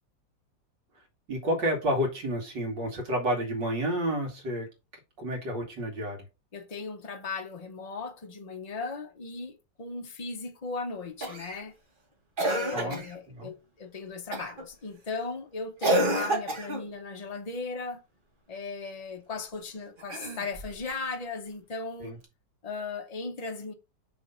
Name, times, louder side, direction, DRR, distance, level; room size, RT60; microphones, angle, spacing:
voice 1, 1.3-4.7 5.2-6.2 12.7-13.0 13.3-13.5 22.0-22.2, equal, 75° right, 2.6 m, -30 dB
voice 2, 6.5-11.7 12.4-18.0 18.5-22.1 22.6-23.7, left 4 dB, 90° left, 0.3 m, -37 dB
Cough, 11.2-11.6 12.4-13.1 14.3-14.6 15.8-16.9 20.0-20.8 22.2-22.3, right 1 dB, 30° right, 1.3 m, -29 dB
6.2 x 3.2 x 5.4 m
omnidirectional pair, 2.0 m